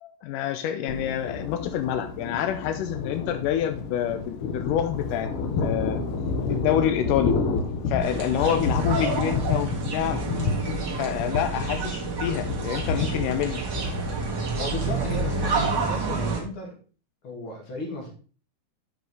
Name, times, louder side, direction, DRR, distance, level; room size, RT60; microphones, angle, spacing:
voice 1, 0.0-5.3 5.6-6.0 6.5-7.3 7.9-10.2 11.0-13.6, left 10 dB, 85° left, 2.2 m, -27 dB
Thunder, 0.9-15.7, left 4 dB, 70° left, 1.4 m, -30 dB
sound 1, 8.0-16.4, right 4 dB, 40° right, 2.1 m, -29 dB
voice 2, 8.4-9.2 14.6-16.8 17.2-18.1, left 1 dB, 45° left, 2.9 m, -35 dB
7.7 x 5.2 x 4.7 m
omnidirectional pair, 3.6 m